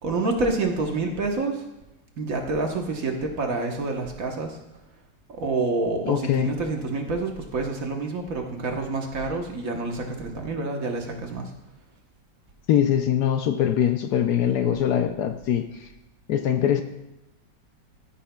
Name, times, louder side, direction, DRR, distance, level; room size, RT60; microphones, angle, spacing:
voice 1, 0.0-1.6 2.2-4.6 5.3-11.5, right 3 dB, 55° right, 2 dB, 1.4 m, -28 dB
voice 2, 6.1-6.5 12.7-15.7 16.3-16.8, left 9 dB, 75° left, 7 dB, 1.1 m, -22 dB
14.0 x 9.8 x 2.3 m, 0.95 s
omnidirectional pair, 2.0 m